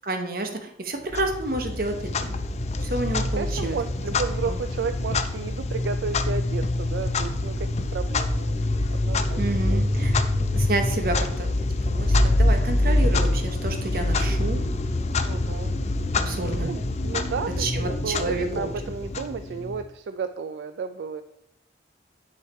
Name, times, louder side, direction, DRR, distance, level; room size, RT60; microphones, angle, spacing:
voice 1, 0.1-2.4 2.8-3.8 9.3-10.2 10.5-11.5 11.8-14.6 16.2-16.7 17.6-18.7, right 2 dB, 55° right, 4 dB, 1.0 m, -29 dB
Clock, 1.1-19.8, left 2 dB, 40° left, 0.5 m, -25 dB
voice 2, 3.3-10.1 15.2-15.7 16.5-21.2, right 5 dB, 85° right, 9 dB, 0.3 m, -33 dB
9.6 x 3.2 x 4.3 m, 0.76 s
head